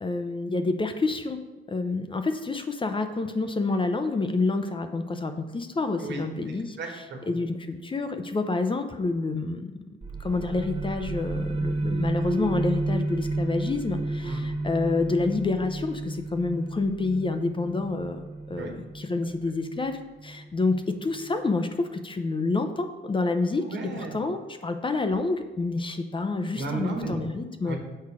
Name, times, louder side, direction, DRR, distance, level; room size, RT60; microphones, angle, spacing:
voice 1, 0.0-1.4 1.7-6.8 7.3-9.6 10.2-23.6 23.9-27.8, left 3 dB, 25° left, 7 dB, 0.6 m, -28 dB
voice 2, 6.0-7.3 14.2-14.4 18.5-18.7 23.6-24.2 26.5-27.2 27.6-27.8, right 2 dB, 65° right, 2 dB, 1.6 m, -34 dB
sound 1, 10.0-21.4, right 2 dB, 30° right, 1.0 m, -32 dB
6.7 x 5.6 x 4.8 m, 1.3 s
cardioid pair, 90°, 20 cm